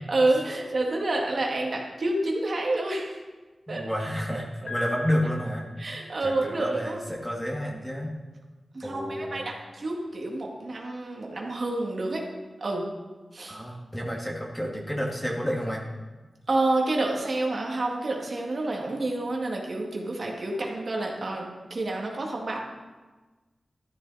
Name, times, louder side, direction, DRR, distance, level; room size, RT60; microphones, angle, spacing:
voice 1, 0.1-3.2 3.7-3.9 5.8-7.0 8.7-12.2 12.6-12.8 13.3-13.6 16.5-22.6, right 2 dB, 55° right, -1 dB, 2.2 m, -28 dB
voice 2, 3.7-5.7 6.2-8.1 8.8-9.5 13.5-15.8, equal, 5° left, -1 dB, 2.2 m, -30 dB
Piano, 4.7-6.6, left 1 dB, 80° left, 3.3 m, -38 dB
13.0 x 12.5 x 4.2 m, 1.2 s
wide cardioid pair, 90°, 0 cm